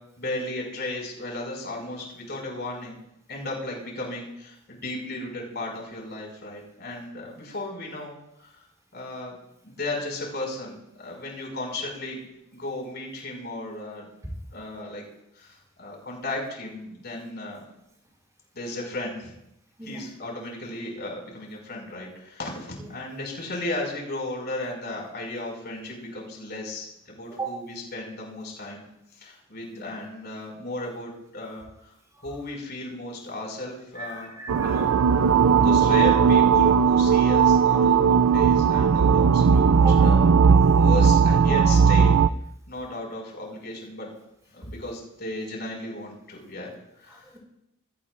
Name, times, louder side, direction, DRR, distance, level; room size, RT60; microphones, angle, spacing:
voice 1, 0.2-3.0 3.3-8.5 8.9-9.4 9.6-12.3 12.5-14.1 14.5-15.0 15.4-17.6 18.5-19.3 19.8-28.8 29.2-31.6 32.2-34.3 34.6-35.0 35.6-40.3 40.7-42.2 42.7-44.1 44.5-46.7 47.0-47.2, left 2 dB, 50° left, 0 dB, 5.8 m, -35 dB
voice 2, 33.9-35.4 39.7-40.0 47.2-47.4, right 4 dB, 15° right, -1 dB, 5.8 m, -36 dB
sound 1, 34.5-42.3, right 6 dB, 80° right, 0.5 m, -18 dB
25.0 x 17.5 x 2.5 m, 0.82 s
head